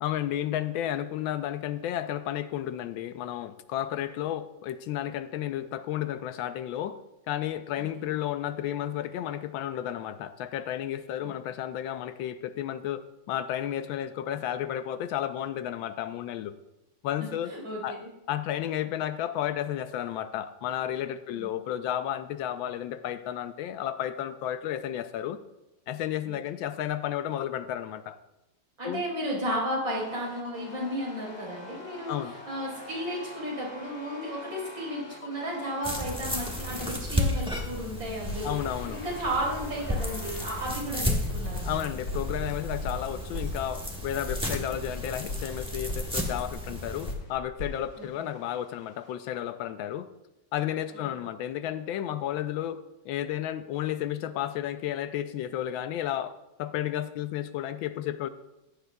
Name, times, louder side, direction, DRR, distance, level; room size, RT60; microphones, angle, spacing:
voice 1, 0.0-7.0 7.3-16.6 17.0-17.5 17.8-18.0 18.3-25.4 25.9-28.2 28.8-29.0 32.1-32.3 38.4-39.0 41.6-50.1 50.5-58.3, left 11 dB, 80° left, 11 dB, 1.3 m, -32 dB
voice 2, 7.8-8.1 11.2-11.3 17.2-18.1 21.3-21.5 26.3-26.4 28.8-38.7 38.9-41.8 48.0-48.1 50.9-51.2, equal, 75° right, -4 dB, 4.8 m, -34 dB
sound 1, 29.9-37.8 38.2-40.9 41.3-44.9 45.3-46.7 47.0-49.1, left 1 dB, 50° left, 2.2 m, -41 dB
sound 2, 35.8-47.1, left 1 dB, 5° right, 0.9 m, -33 dB
15.0 x 10.5 x 2.2 m, 0.95 s
omnidirectional pair, 2.2 m